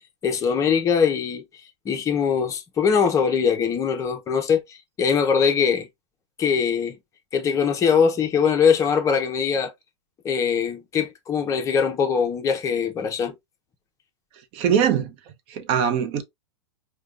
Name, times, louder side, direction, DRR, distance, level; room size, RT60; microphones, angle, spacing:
voice 1, 0.2-1.4 1.8-5.9 6.4-7.0 7.3-9.7 10.2-13.3, left 6 dB, 20° left, 0.7 m, -22 dB
voice 2, 14.5-15.1 15.5-16.2, right 8 dB, 40° right, 0.7 m, -22 dB
4.9 x 2.2 x 2.4 m
hypercardioid pair, 135°, 15 cm